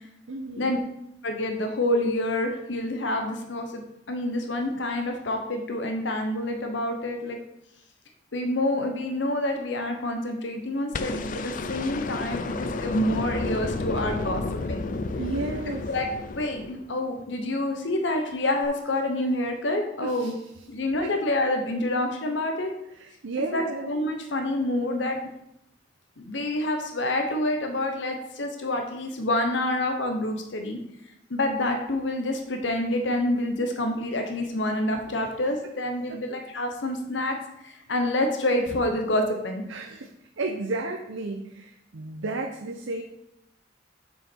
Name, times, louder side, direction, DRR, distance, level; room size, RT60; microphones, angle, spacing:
voice 1, 0.3-0.7 15.2-15.9 20.0-20.3 21.0-21.1 22.9-23.9 35.1-35.3 36.1-36.2 39.7-43.0, right 2 dB, 90° right, 3 dB, 0.7 m, -33 dB
voice 2, 1.2-7.4 8.3-14.4 14.7-14.9 15.9-16.1 16.3-20.3 20.7-22.7 23.5-25.2 26.2-30.8 31.3-37.4 37.6-39.6, left 1 dB, 70° left, 4 dB, 0.9 m, -27 dB
sound 1, 10.9-17.1 18.6-18.7, left 3 dB, 45° left, 0.5 m, -31 dB
7.2 x 5.7 x 4.5 m, 0.82 s
head